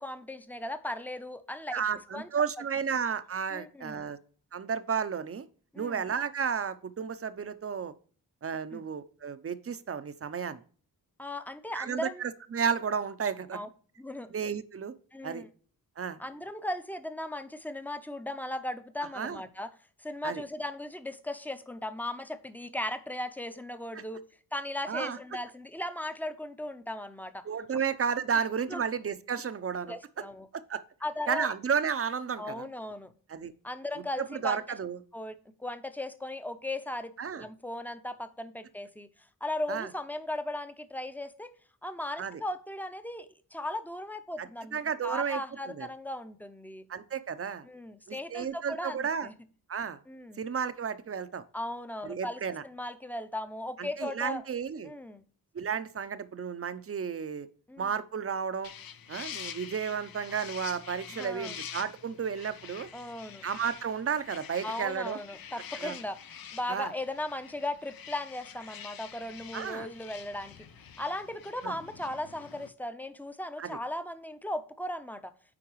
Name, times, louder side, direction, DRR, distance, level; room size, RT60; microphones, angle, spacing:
voice 1, 0.0-1.8 2.1-2.3 3.5-4.1 5.7-6.1 8.7-8.8 11.2-12.2 13.5-13.7 14.0-14.3 15.1-15.5 16.2-19.7 20.0-24.2 24.5-27.5 27.8-27.9 28.7-28.8 29.9-30.5 31.0-31.5 32.4-33.1 33.6-34.6 35.1-39.1 39.4-41.5 41.8-46.8 47.6-49.3 50.1-50.4 51.5-54.4 54.8-55.2 57.7-57.9 61.1-61.6 62.9-63.4 64.6-66.2 66.5-70.5 71.0-75.3, left 1 dB, 5° left, 10 dB, 0.7 m, -37 dB
voice 2, 1.7-4.2 4.5-5.5 5.8-7.9 8.4-10.6 11.7-13.6 14.3-14.9 15.2-15.4 16.0-16.2 19.1-19.4 20.2-20.4 24.9-25.2 27.4-30.0 30.7-30.8 31.3-32.7 33.3-33.5 34.2-35.0 37.2-37.5 39.7-39.9 42.2-42.4 44.4-45.9 46.9-47.7 48.1-49.3 49.7-50.0 50.4-51.4 52.0-52.6 53.8-54.9 55.5-57.5 57.8-58.7 59.1-62.9 63.4-65.2 65.8-65.9 66.7-66.9 69.5-69.9 71.6-71.8 73.6-73.8, right 7 dB, 40° right, 13 dB, 0.6 m, -32 dB
sound 1, 58.6-72.7, left 8 dB, 70° left, 0.7 m, -46 dB
8.6 x 4.6 x 3.1 m, 0.43 s
cardioid pair, 75°, 37 cm